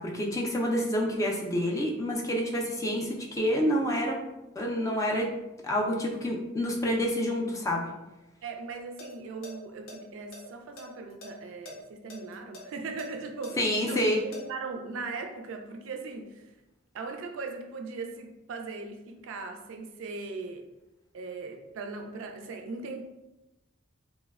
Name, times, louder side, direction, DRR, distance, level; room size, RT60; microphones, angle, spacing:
voice 1, 0.0-4.2 4.6-5.3 5.6-7.9 13.6-14.2, equal, 15° left, -1 dB, 0.3 m, -28 dB
voice 2, 8.4-16.4 16.9-20.7 21.1-23.0, right 4 dB, 80° right, 5 dB, 0.3 m, -39 dB
sound 1, 8.8-9.1 9.4-9.5 9.9-11.3 11.6-11.7 12.1-14.4, left 1 dB, 70° left, 0.7 m, -45 dB
3.0 x 2.1 x 2.3 m, 0.99 s
head